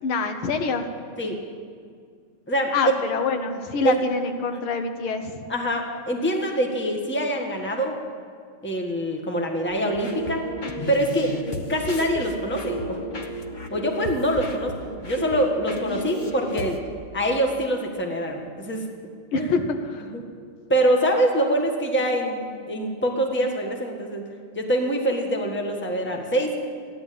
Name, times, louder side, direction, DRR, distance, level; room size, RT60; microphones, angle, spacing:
voice 1, 0.0-0.9 2.7-5.5 10.6-10.8 19.3-20.1, left 4 dB, 80° left, 7 dB, 1.9 m, -26 dB
voice 2, 5.5-8.0 8.6-10.5 10.9-13.0 13.7-16.8 17.1-18.9 19.3-19.5 20.1-20.2 20.7-24.3 24.5-26.6, right 1 dB, 5° left, 1 dB, 1.3 m, -25 dB
sound 1, 9.7-16.8, left 1 dB, 45° left, 0.6 m, -33 dB
15.0 x 11.0 x 8.6 m, 2.1 s
omnidirectional pair, 2.3 m